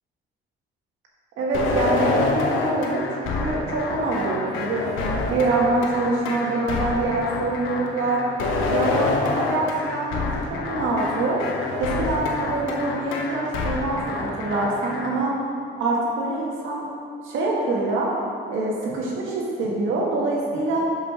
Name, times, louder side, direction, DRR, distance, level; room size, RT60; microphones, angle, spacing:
voice 1, 1.4-8.2 8.7-10.3 10.7-11.4 11.7-15.4 15.8-16.9 17.2-18.1 18.5-20.8, right 2 dB, 85° right, -3 dB, 1.7 m, -25 dB
sound 1, 1.5-15.2, left 3 dB, 85° left, 1.0 m, -27 dB
5.6 x 5.6 x 5.9 m, 2.2 s
cardioid pair, 90°, 20 cm